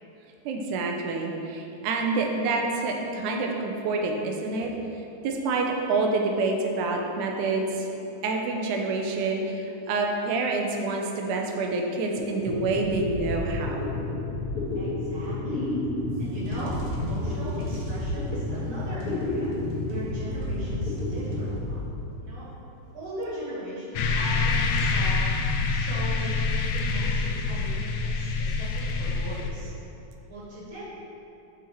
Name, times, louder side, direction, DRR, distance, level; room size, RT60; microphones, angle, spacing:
voice 1, 0.5-4.7 5.2-7.9 8.2-13.8, right 3 dB, 85° right, 2 dB, 2.1 m, -27 dB
sound 1, 12.2-22.6, left 2 dB, 55° left, 1.9 m, -31 dB
voice 2, 14.8-15.8 16.2-19.5 19.9-21.8 22.2-22.5 22.9-25.3 25.7-29.7 30.3-30.8, right 1 dB, 50° right, -7 dB, 1.9 m, -39 dB
sound 2, 16.0-22.0, right 1 dB, 65° right, 1.3 m, -36 dB
sound 3, 24.0-29.5, left 4 dB, 85° left, 2.0 m, -26 dB
7.5 x 4.0 x 4.3 m, 2.8 s
omnidirectional pair, 3.6 m